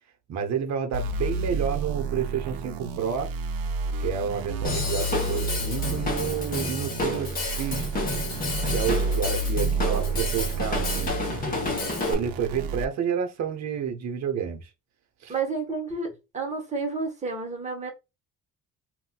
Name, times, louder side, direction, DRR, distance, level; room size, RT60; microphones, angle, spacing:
voice 1, 0.3-3.3 4.0-7.9 8.7-11.2 12.0-14.7 15.2-15.3, right 7 dB, 50° right, 0.7 m, -30 dB
sound 1, 0.9-12.8, right 3 dB, 90° right, 0.5 m, -30 dB
Drum kit / Drum, 4.6-12.1, left 3 dB, 25° left, 0.8 m, -30 dB
voice 2, 15.3-17.9, right 4 dB, 20° right, 0.9 m, -30 dB
4.0 x 2.2 x 2.2 m
cardioid pair, 150°, 34 cm